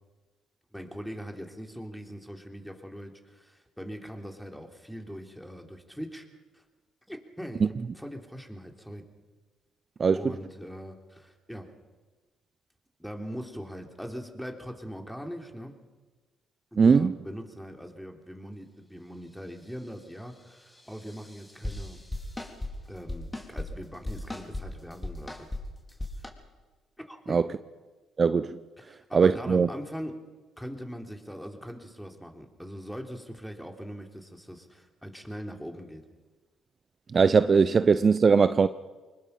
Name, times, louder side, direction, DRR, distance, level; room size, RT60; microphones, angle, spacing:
voice 1, 0.7-6.3 6.5-6.6 7.1-7.7 7.9-9.1 10.1-11.7 13.0-15.7 16.7-22.0 22.8-25.5 26.2-26.3 27.1-27.4 28.8-30.2 30.6-36.0, equal, ahead, 3.5 m, -41 dB
voice 2, 16.8-17.1 27.3-27.4 28.2-28.6 29.1-29.7 37.1-38.7, right 5 dB, 45° right, 0.6 m, -20 dB
sound 1, 20.9-22.7 23.1-23.7 24.0-24.6 24.9-25.6 25.9-26.3, left 2 dB, 20° left, 4.0 m, -36 dB
25.0 x 20.5 x 5.7 m
hypercardioid pair, 55°, 0 cm